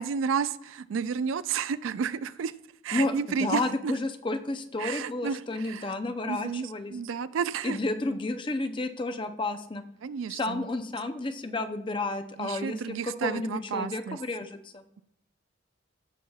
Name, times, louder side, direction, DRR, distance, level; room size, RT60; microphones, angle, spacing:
voice 1, 0.0-2.5 2.8-3.9 4.8-5.9 6.3-7.8 10.0-10.7 12.4-14.2, right 6 dB, 80° right, 15 dB, 0.4 m, -31 dB
voice 2, 3.4-6.9 7.6-9.8 10.3-14.8, left 2 dB, 25° left, 8 dB, 0.5 m, -31 dB
15.0 x 5.6 x 2.3 m, 0.73 s
head